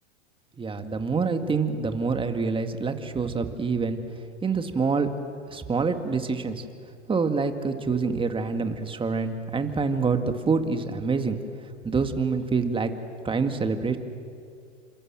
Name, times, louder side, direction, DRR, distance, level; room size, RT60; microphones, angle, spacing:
voice 1, 0.6-4.0 4.4-5.1 5.5-6.6 7.1-11.4 11.8-12.9 13.2-14.0, right 4 dB, 15° right, 7 dB, 2.1 m, -26 dB
29.0 x 27.0 x 7.6 m, 2.4 s
hypercardioid pair, 110°, 36 cm